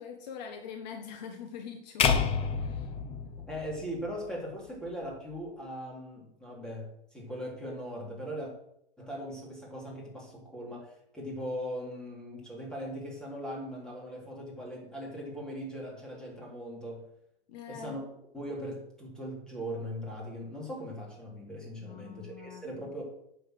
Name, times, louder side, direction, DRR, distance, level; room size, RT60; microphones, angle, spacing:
voice 1, 0.0-2.1 2.6-2.9 17.5-18.0 21.8-22.9, left 7 dB, 45° left, 5 dB, 1.4 m, -44 dB
sound 1, 2.0-4.3, left 6 dB, 20° left, 0.9 m, -29 dB
voice 2, 3.5-8.5 9.0-17.1 17.7-23.0, equal, ahead, -3 dB, 3.4 m, -39 dB
9.4 x 7.1 x 6.7 m, 0.77 s
hypercardioid pair, 135°, 29 cm